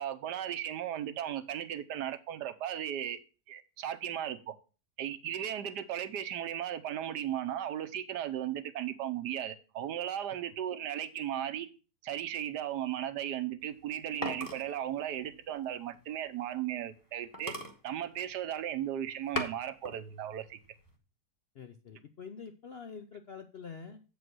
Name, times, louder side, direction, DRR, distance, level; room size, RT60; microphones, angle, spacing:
voice 1, 0.0-3.2 3.5-4.4 5.0-11.7 12.0-17.5 17.8-20.6, right 11 dB, 80° right, 1.4 m, -36 dB
sound 1, 13.6-16.7 17.0-17.1 17.3-18.7 19.1-20.0 20.4-20.9, left 1 dB, 15° left, 1.2 m, -40 dB
voice 2, 21.5-24.0, left 6 dB, 60° left, 0.6 m, -46 dB
7.9 x 5.1 x 6.1 m
omnidirectional pair, 1.8 m